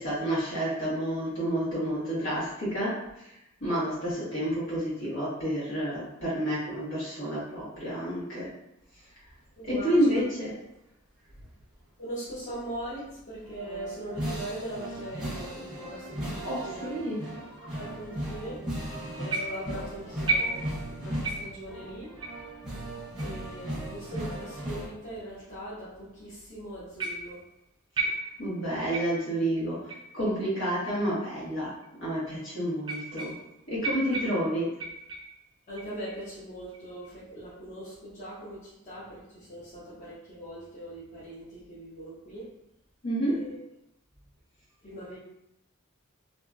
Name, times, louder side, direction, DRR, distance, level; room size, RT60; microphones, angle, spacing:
voice 1, 0.0-2.9 3.6-8.5 9.7-10.5 16.4-17.2 28.4-31.7 32.0-33.3 33.7-34.7 43.0-43.3, right 1 dB, 70° left, -8 dB, 1.4 m, -29 dB
voice 2, 9.6-10.2 12.0-17.0 17.6-18.6 19.2-22.4 23.2-27.4 35.7-42.5 43.2-43.6 44.8-45.2, right 1 dB, 35° left, -11 dB, 0.9 m, -40 dB
sound 1, 13.5-24.9, right 1 dB, 5° right, 0.8 m, -37 dB
sound 2, 19.3-19.8 20.3-20.9 21.2-21.6 22.2-22.4 23.2-23.3 24.2-24.3 25.1-25.2 27.0-27.4 28.0-28.6 28.9-29.3 29.9-30.1 30.9-31.0 31.8-31.9 32.8-33.5 33.8-35.4 35.8-36.2 36.7-37.1, right 3 dB, 20° right, 0.4 m, -33 dB
2.8 x 2.6 x 2.3 m, 0.85 s
head